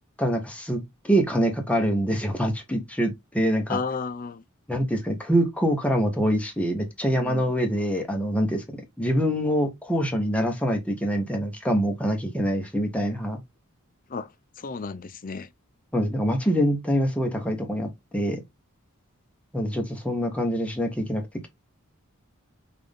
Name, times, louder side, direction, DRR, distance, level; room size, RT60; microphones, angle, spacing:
voice 1, 0.2-3.8 4.7-8.6 9.0-13.4 15.9-18.4 19.5-21.5, equal, 5° left, 0.8 m, -25 dB
voice 2, 3.7-4.4 7.2-7.4 14.1-14.3 14.6-15.5, left 4 dB, 40° left, 0.5 m, -32 dB
5.7 x 2.5 x 3.4 m
head